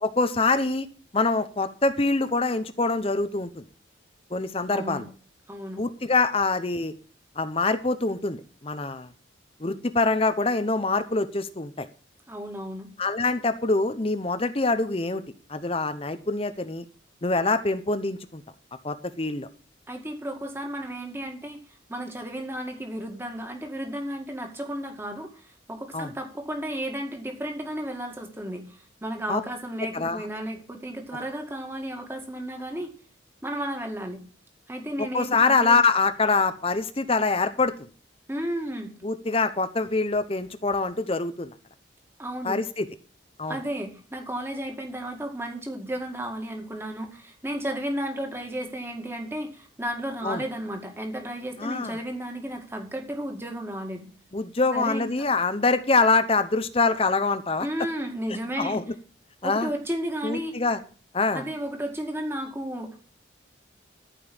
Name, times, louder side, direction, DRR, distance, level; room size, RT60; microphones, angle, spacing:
voice 1, 0.0-0.9 1.1-3.6 4.3-5.1 5.8-6.9 7.4-9.1 9.6-11.9 13.0-15.2 15.5-16.8 17.2-18.4 18.8-19.5 25.9-26.1 29.3-29.4 29.9-30.2 35.0-37.9 39.0-41.5 42.4-42.9 43.4-43.6 50.2-50.4 51.6-52.0 54.3-57.7 58.6-58.8 59.4-59.7 60.2-60.8 61.1-61.4, left 3 dB, 30° left, 11 dB, 0.8 m, -25 dB
voice 2, 4.7-5.1 5.5-5.8 12.3-12.9 19.9-21.6 21.9-25.3 25.7-32.9 33.4-34.2 34.7-35.8 38.3-38.9 42.2-42.6 43.5-54.1 54.7-55.3 57.6-58.8 59.4-60.6 61.3-63.0, right 1 dB, 10° right, 3 dB, 2.2 m, -33 dB
14.0 x 5.5 x 8.7 m, 0.42 s
head